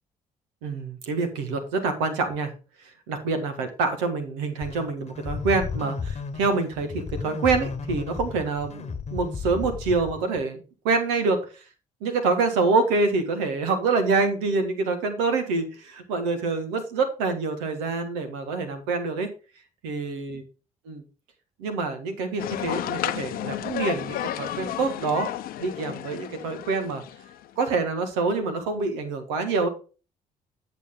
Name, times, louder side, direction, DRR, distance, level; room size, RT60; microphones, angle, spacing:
voice 1, 0.6-2.5 3.1-11.4 12.0-19.3 19.8-20.4 20.9-21.0 21.6-25.3 25.6-27.0 27.6-29.7, right 4 dB, 85° right, 7 dB, 1.6 m, -26 dB
sound 1, 4.6-10.4, left 5 dB, 40° left, 1.2 m, -34 dB
sound 2, 22.4-27.5, left 12 dB, 70° left, 0.7 m, -32 dB
8.4 x 6.7 x 3.7 m, 0.34 s
hypercardioid pair, 55°, 16 cm